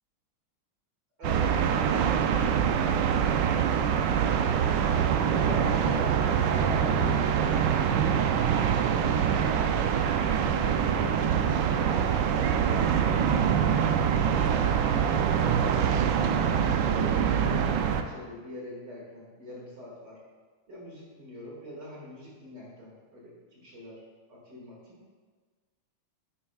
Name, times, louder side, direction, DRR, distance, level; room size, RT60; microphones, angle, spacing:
voice 1, 1.2-2.7 3.3-5.0 5.3-7.7 8.7-9.7 10.4-13.4 14.0-17.6 18.0-20.2 20.7-24.0 24.3-25.0, left 1 dB, 55° right, -5 dB, 2.8 m, -43 dB
sound 1, 1.2-18.0, right 8 dB, 70° right, 1.1 m, -25 dB
10.0 x 8.7 x 2.4 m, 1.5 s
omnidirectional pair, 2.3 m